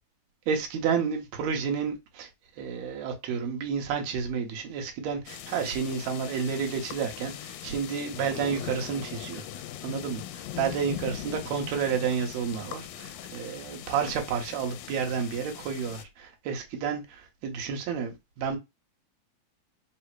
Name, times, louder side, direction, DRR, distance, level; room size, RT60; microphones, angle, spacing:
voice 1, 0.5-2.3 2.6-18.6, right 6 dB, 75° right, 2.1 m, -31 dB
sound 1, 5.3-16.0, left 12 dB, 85° left, 1.9 m, -40 dB
4.9 x 2.0 x 4.5 m
omnidirectional pair, 3.3 m